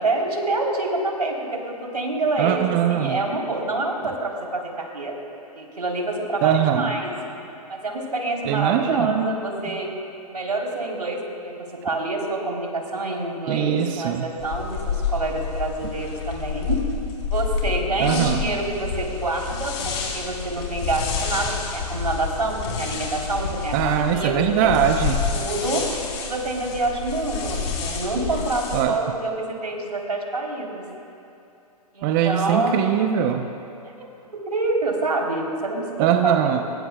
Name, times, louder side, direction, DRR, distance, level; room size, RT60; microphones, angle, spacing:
voice 1, 0.0-5.1 5.6-7.1 7.7-9.9 10.3-16.8 17.3-24.7 25.3-30.8 31.9-32.9 34.5-36.6, right 2 dB, 90° right, -1 dB, 3.8 m, -27 dB
voice 2, 2.4-3.2 6.4-6.9 8.5-9.3 9.7-9.8 13.5-14.3 18.0-18.4 23.7-25.5 28.7-29.0 32.0-33.5 36.0-36.6, right 9 dB, 30° right, 5 dB, 0.9 m, -22 dB
sound 1, 14.4-28.8, left 6 dB, 50° left, 4.5 m, -29 dB
25.5 x 22.0 x 2.4 m, 2.8 s
hypercardioid pair, 125°, 20 cm